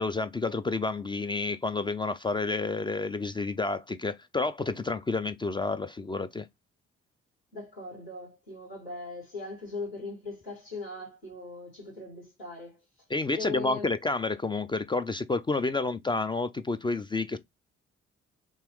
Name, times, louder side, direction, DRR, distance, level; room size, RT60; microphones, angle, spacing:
voice 1, 0.0-6.5 13.1-17.4, left 3 dB, 15° left, 0.3 m, -30 dB
voice 2, 7.5-12.8 13.3-13.9, left 3 dB, 85° left, 2.2 m, -39 dB
3.1 x 3.0 x 3.0 m
figure-of-eight pair, 40°, 33 cm